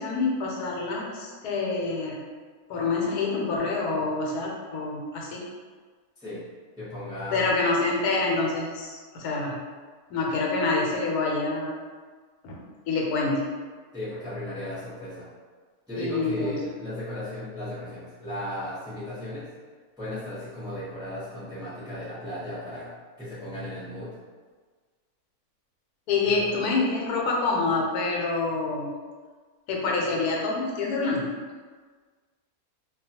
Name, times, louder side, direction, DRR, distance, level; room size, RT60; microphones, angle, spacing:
voice 1, 0.0-2.3 2.7-5.4 7.3-9.6 10.1-11.7 12.4-13.5 16.0-16.6 26.1-28.9 29.7-31.3, left 3 dB, 90° left, -2 dB, 1.1 m, -27 dB
voice 2, 6.8-7.6 13.9-15.3 15.9-19.5 20.0-24.1, left 1 dB, 5° right, -11 dB, 0.5 m, -36 dB
2.4 x 2.2 x 2.7 m, 1.5 s
omnidirectional pair, 1.6 m